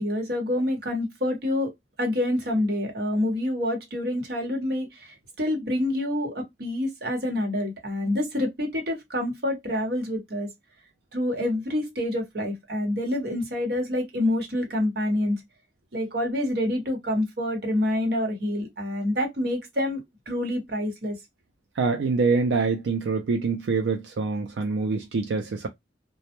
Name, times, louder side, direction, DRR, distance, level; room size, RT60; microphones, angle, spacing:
voice 1, 0.0-1.7 2.0-10.5 11.1-15.4 15.9-20.0 20.3-21.2, left 1 dB, 55° right, 1.0 m, -27 dB
voice 2, 21.8-25.7, right 4 dB, 85° right, 0.4 m, -25 dB
2.1 x 2.1 x 2.8 m
head